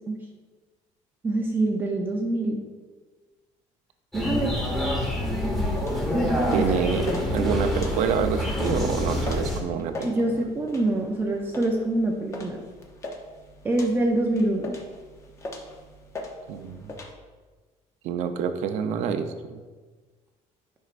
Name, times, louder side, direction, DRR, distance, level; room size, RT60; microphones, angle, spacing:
voice 1, 1.2-2.6 4.1-4.6 6.1-6.7 10.0-12.6 13.6-14.8, right 1 dB, 15° right, 0 dB, 0.5 m, -25 dB
sound 1, 4.1-9.6, left 1 dB, ahead, 1.1 m, -27 dB
sound 2, 5.7-17.1, left 1 dB, 25° left, 0.8 m, -41 dB
voice 2, 6.5-9.9 16.5-16.9 18.0-19.3, right 7 dB, 65° right, 8 dB, 0.6 m, -27 dB
9.6 x 5.5 x 2.5 m, 1.4 s
cardioid pair, 165°, 13 cm